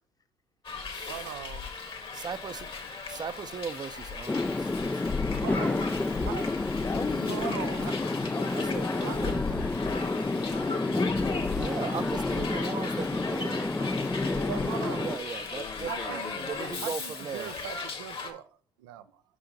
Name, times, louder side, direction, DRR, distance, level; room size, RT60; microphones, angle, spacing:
Hiss, 0.6-18.3, left 4 dB, 50° left, 1.8 m, -37 dB
voice 1, 1.1-1.6 5.4-5.8 6.2-6.5 7.3-8.0 8.9-9.2 14.5-15.1 15.8-16.4 16.8-19.2, right 11 dB, 90° right, 0.5 m, -39 dB
voice 2, 2.1-2.7 3.1-5.2 8.5-9.7 11.5-13.7 15.0-17.5, right 6 dB, 40° right, 0.6 m, -38 dB
sound 1, 4.3-15.2, left 2 dB, 15° left, 0.4 m, -30 dB
voice 3, 6.8-7.5 8.3-9.4 9.8-12.2 13.7-15.3 15.5-16.9, left 4 dB, 35° left, 1.1 m, -38 dB
5.5 x 5.0 x 5.2 m
hypercardioid pair, 55°, 12 cm